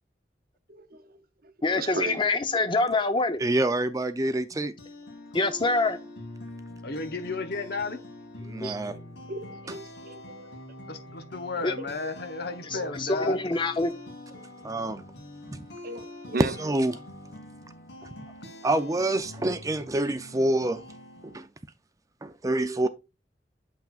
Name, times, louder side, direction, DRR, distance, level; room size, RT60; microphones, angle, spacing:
voice 1, 0.7-2.3 8.6-9.0 9.3-10.6 11.5-12.1 12.7-12.9 14.3-14.4 15.8-16.5, right 2 dB, 55° right, 0.9 m, -37 dB
voice 2, 1.6-3.4 5.3-6.0 8.6-8.7 11.6-11.7 12.7-13.9, left 3 dB, 30° left, 0.7 m, -25 dB
voice 3, 3.4-4.7 8.5-8.9 14.6-15.0 15.5-15.7 16.6-17.0 18.6-20.8 21.2-21.5 22.2-22.9, right 1 dB, 20° right, 0.5 m, -27 dB
sound 1, 4.5-21.4, left 1 dB, 85° left, 2.4 m, -44 dB
voice 4, 6.8-8.0 10.9-13.4, left 3 dB, 65° left, 0.9 m, -33 dB
7.5 x 5.8 x 2.4 m
head